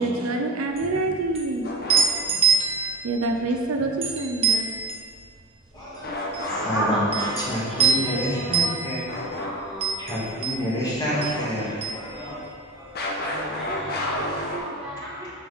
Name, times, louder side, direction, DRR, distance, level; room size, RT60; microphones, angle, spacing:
voice 1, 0.0-1.7 3.0-4.7, right 2 dB, 70° right, 4 dB, 0.5 m, -26 dB
sound 1, 0.7-12.9 13.2-14.3, right 5 dB, 30° right, 0.8 m, -26 dB
sound 2, 1.6-2.4 6.0-7.6 9.1-9.5 9.8-9.9 11.1-11.9 12.9-14.6, left 1 dB, 45° left, 0.9 m, -31 dB
voice 2, 5.7-9.0 10.0-12.4 12.8-12.9 13.2-14.4 15.0-15.3, equal, 20° left, -6 dB, 1.5 m, -30 dB
voice 3, 6.7-10.0 13.5-15.3, right 1 dB, 5° right, -8 dB, 1.8 m, -33 dB
7.4 x 6.1 x 3.9 m, 2.3 s
head